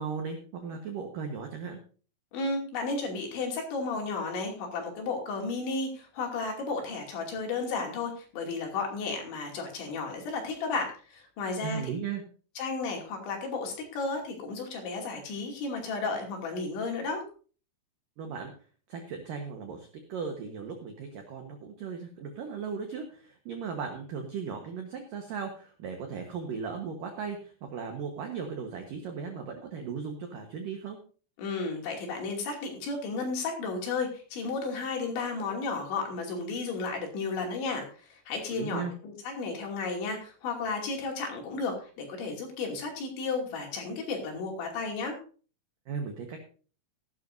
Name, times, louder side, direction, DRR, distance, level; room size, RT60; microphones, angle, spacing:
voice 1, 0.0-1.8 11.6-12.2 18.2-18.5 18.9-31.0 38.5-38.9 45.9-46.4, right 6 dB, 85° right, 4 dB, 1.9 m, -37 dB
voice 2, 2.3-11.9 12.6-17.2 31.4-45.2, left 4 dB, 65° left, 1 dB, 4.8 m, -33 dB
16.5 x 12.0 x 2.7 m, 0.40 s
omnidirectional pair, 5.9 m